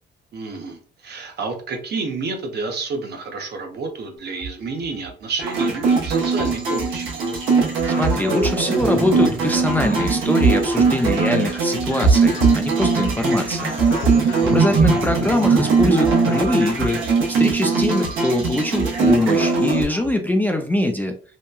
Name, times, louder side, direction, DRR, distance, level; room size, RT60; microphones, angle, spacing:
voice 1, 0.3-7.1 14.4-14.8, right 4 dB, 55° right, 4 dB, 0.7 m, -30 dB
sound 1, 4.3-5.1 5.5-7.1 7.5-17.2 17.5-20.1, right 3 dB, 75° left, 0.6 m, -27 dB
sound 2, 5.4-19.8, right 4 dB, 80° right, 0.9 m, -20 dB
voice 2, 7.9-13.7 14.2-17.0 17.3-21.2, left 1 dB, 10° left, 4 dB, 0.3 m, -23 dB
2.9 x 2.2 x 2.2 m, 0.41 s
cardioid pair, 90°, 20 cm